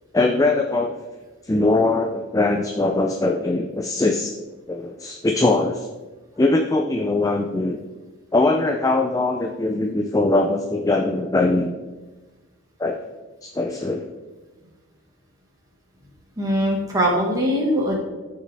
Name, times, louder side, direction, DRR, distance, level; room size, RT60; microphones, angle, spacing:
voice 1, 0.1-1.0 1.4-4.3 4.7-5.9 6.4-7.8 8.3-11.7 12.8-13.0 13.4-14.1, left 2 dB, 15° left, 3 dB, 0.4 m, -21 dB
voice 2, 16.4-18.0, equal, 15° right, -3 dB, 1.6 m, -21 dB
14.0 x 4.9 x 3.4 m, 1.2 s
head